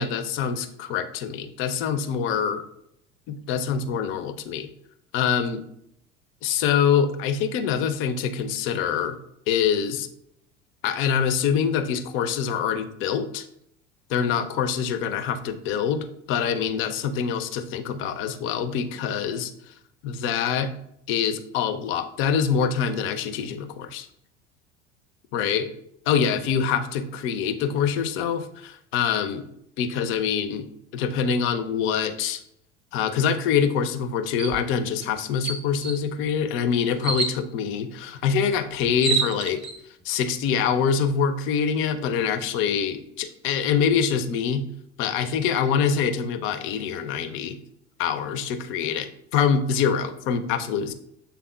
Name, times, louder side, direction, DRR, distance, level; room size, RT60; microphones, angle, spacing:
voice 1, 0.0-2.7 3.3-4.7 5.1-5.6 6.4-9.2 9.5-10.1 10.8-13.5 14.1-19.7 20.0-20.7 21.1-24.1 25.3-25.7 26.1-29.4 29.8-30.7 30.9-32.4 32.9-39.7 40.0-44.6 45.0-47.6 48.0-50.9, left 7 dB, 35° left, 10 dB, 0.5 m, -25 dB
sound 1, 34.4-34.6 35.0-35.1 35.4-36.0 37.0-37.4 38.5-38.6 38.8-39.8, right 4 dB, 15° right, 0.7 m, -27 dB
6.8 x 3.4 x 2.3 m, 0.75 s
figure-of-eight pair, 70°, 36 cm